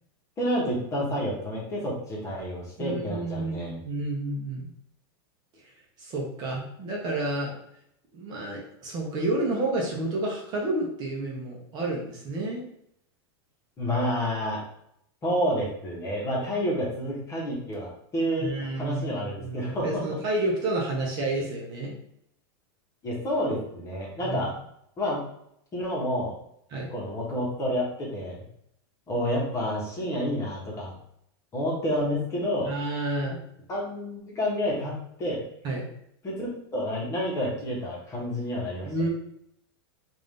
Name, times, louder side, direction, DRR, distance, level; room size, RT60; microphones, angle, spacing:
voice 1, 0.4-3.8 13.8-14.6 15.2-18.5 18.7-20.0 23.0-24.5 25.0-25.2 25.7-26.3 26.9-28.4 29.1-30.9 31.5-32.7 33.7-35.4 36.2-38.9, equal, 20° left, -4 dB, 1.2 m, -29 dB
voice 2, 2.8-4.7 6.0-7.6 8.1-12.6 18.4-21.9 24.2-24.4 26.7-26.9 32.6-33.4 35.6-35.8 38.8-39.1, right 2 dB, 30° right, -2 dB, 0.9 m, -30 dB
3.6 x 2.6 x 3.3 m, 0.73 s
supercardioid pair, 150°, 13 cm